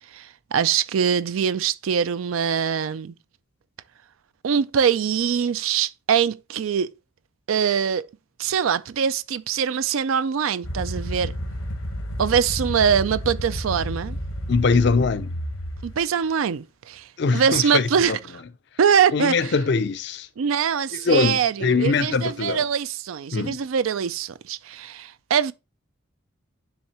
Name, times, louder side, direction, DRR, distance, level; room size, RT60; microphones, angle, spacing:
voice 1, 0.1-3.1 4.4-6.9 7.5-8.1 8.4-11.3 12.2-14.2 15.8-18.2 18.8-19.5 20.4-25.5, right 7 dB, 85° right, 0.4 m, -23 dB
sound 1, 10.6-16.0, equal, 80° left, 1.1 m, -31 dB
voice 2, 14.5-15.3 17.2-18.2 19.1-20.3 20.9-22.6 23.3-23.6, left 4 dB, 55° left, 0.4 m, -22 dB
9.6 x 3.6 x 2.8 m
head